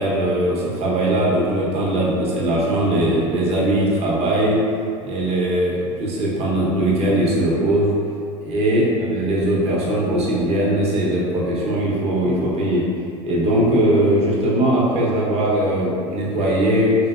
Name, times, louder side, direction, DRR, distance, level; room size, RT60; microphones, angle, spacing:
voice 1, 0.0-4.6 5.0-7.9 8.4-12.8 13.2-17.0, right 1 dB, 40° right, -6 dB, 1.0 m, -20 dB
3.2 x 2.7 x 2.4 m, 2.4 s
hypercardioid pair, 95°, 16 cm